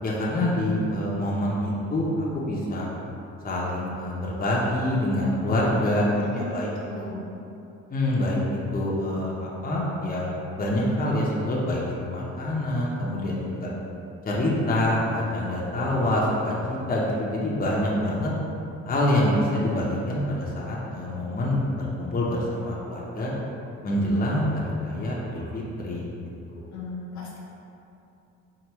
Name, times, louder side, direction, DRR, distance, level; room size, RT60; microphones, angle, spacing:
voice 1, 0.0-2.9 3.4-6.7 7.0-7.1 7.9-10.3 10.6-13.7 14.2-18.3 18.9-23.3 23.8-26.0 26.5-26.7, left 1 dB, 30° left, -5 dB, 0.7 m, -26 dB
voice 2, 6.2-7.2 26.7-27.4, left 3 dB, 70° left, -4 dB, 0.9 m, -36 dB
4.7 x 2.5 x 3.0 m, 2.7 s
cardioid pair, 90°, 30 cm